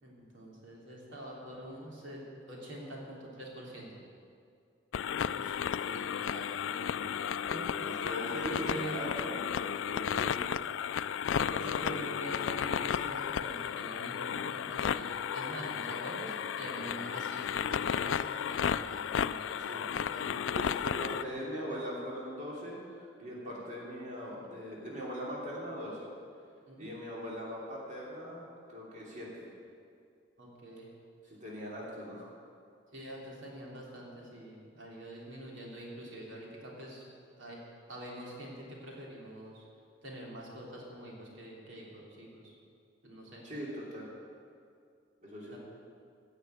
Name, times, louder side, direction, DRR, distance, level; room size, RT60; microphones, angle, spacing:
voice 1, 0.0-2.2 2.5-4.0 5.3-5.6 5.8-7.2 7.5-7.7 8.5-9.0 11.6-20.3 21.1-21.5 26.7-26.9 30.4-30.9 32.9-37.0 37.4-37.6 37.9-39.6 40.0-42.5 43.0-43.4 45.5-45.6, right 1 dB, 85° right, -3 dB, 3.2 m, -45 dB
sound 1, 4.9-21.2, left 8 dB, 90° left, 0.4 m, -33 dB
voice 2, 7.3-10.5 11.3-11.9 19.6-19.9 20.5-26.0 26.8-29.5 31.3-32.3 43.4-44.1 45.2-45.6, equal, 40° right, -5 dB, 3.0 m, -41 dB
16.0 x 6.6 x 9.0 m, 2.4 s
head